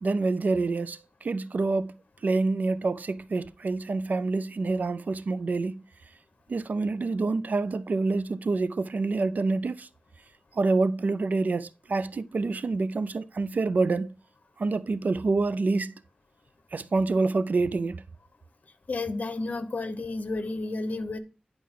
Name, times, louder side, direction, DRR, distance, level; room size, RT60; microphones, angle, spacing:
voice 1, 0.0-1.9 2.2-5.8 6.5-9.9 10.5-14.1 14.6-15.9 16.7-18.0, right 3 dB, 65° right, 0.4 m, -27 dB
voice 2, 18.9-21.2, left 3 dB, 65° left, 0.9 m, -31 dB
10.0 x 4.6 x 3.7 m
wide cardioid pair, 100°, 3 cm